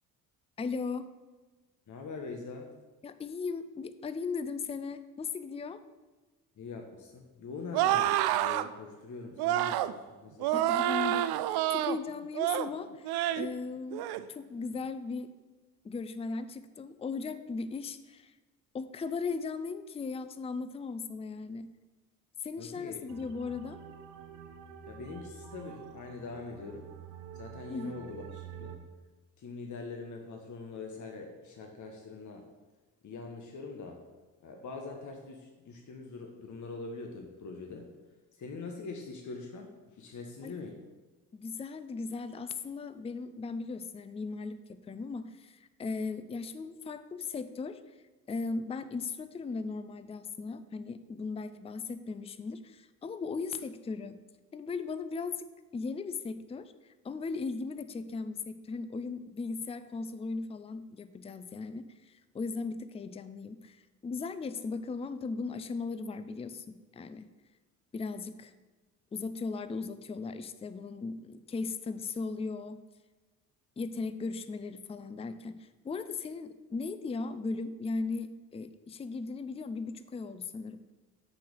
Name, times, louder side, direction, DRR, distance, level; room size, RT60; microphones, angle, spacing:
voice 1, 0.6-1.1 3.0-5.8 10.5-11.4 11.7-15.3 15.8-18.3 18.7-21.7 22.4-23.8 27.7-28.0 40.4-40.5 41.3-47.8 48.3-54.2 54.5-56.7 57.0-67.3 67.9-68.5 69.1-72.8 73.8-80.8, left 4 dB, 15° left, 12 dB, 0.5 m, -37 dB
voice 2, 1.9-2.7 6.6-10.6 22.6-23.2 24.9-26.9 27.3-28.7 29.4-32.4 33.0-34.0 34.4-37.9 38.3-40.8, left 4 dB, 40° left, 3 dB, 1.2 m, -43 dB
sound 1, 7.7-8.7 9.4-9.9 10.4-12.0 12.3-12.7 13.1-13.5 13.9-14.2, right 13 dB, 55° right, 0.5 m, -28 dB
sound 2, 23.1-28.8, right 7 dB, 75° right, 1.0 m, -47 dB
8.3 x 4.2 x 6.3 m, 1.2 s
figure-of-eight pair, 45°, 46 cm